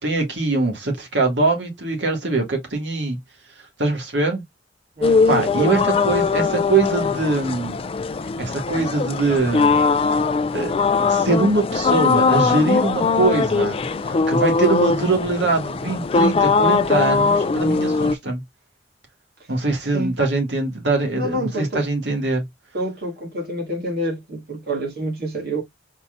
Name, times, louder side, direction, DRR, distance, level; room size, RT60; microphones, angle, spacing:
voice 1, 0.0-3.2 3.8-4.4 5.3-7.8 8.4-9.8 10.5-10.7 11.1-18.4 19.5-22.4, right 3 dB, 80° right, 2.0 m, -22 dB
sound 1, 5.0-18.1, left 4 dB, 30° left, 0.3 m, -20 dB
voice 2, 5.0-5.7 19.9-20.1 21.2-21.8 22.7-25.6, right 1 dB, 60° right, 1.9 m, -27 dB
4.4 x 4.0 x 2.4 m
head